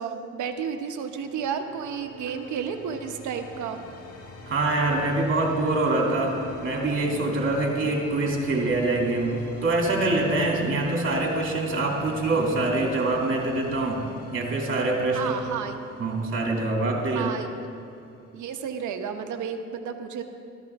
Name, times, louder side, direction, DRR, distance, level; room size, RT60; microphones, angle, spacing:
voice 1, 0.0-3.8 15.1-15.7 17.1-17.5 18.3-20.2, right 7 dB, 75° right, 6 dB, 1.1 m, -32 dB
sound 1, 1.0-18.7, left 2 dB, 50° left, 1.7 m, -43 dB
voice 2, 4.5-14.1 14.3-15.3 16.0-17.3, right 2 dB, 45° right, -1 dB, 2.7 m, -25 dB
14.0 x 13.5 x 3.6 m, 2.5 s
cardioid pair, 90°, 30 cm